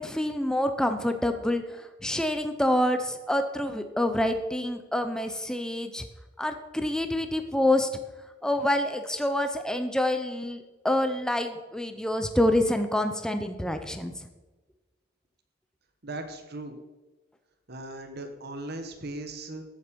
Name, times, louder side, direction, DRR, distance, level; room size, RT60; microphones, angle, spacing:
voice 1, 0.0-6.0 6.4-7.9 8.4-14.1, left 1 dB, 5° left, 7 dB, 0.7 m, -27 dB
voice 2, 16.0-16.8 17.7-19.6, right 2 dB, 50° right, 6 dB, 1.3 m, -38 dB
14.5 x 7.9 x 5.3 m, 1.1 s
head